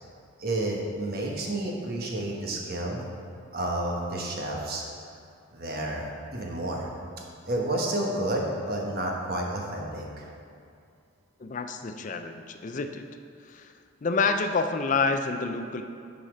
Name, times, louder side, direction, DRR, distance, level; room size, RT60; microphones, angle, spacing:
voice 1, 0.4-3.0 3.5-4.8 5.5-6.9 7.5-10.3, right 1 dB, 45° right, -1 dB, 1.1 m, -30 dB
voice 2, 11.4-13.1 13.4-13.7 14.0-15.8, left 4 dB, 35° left, 7 dB, 0.4 m, -28 dB
9.4 x 4.2 x 4.9 m, 2.4 s
head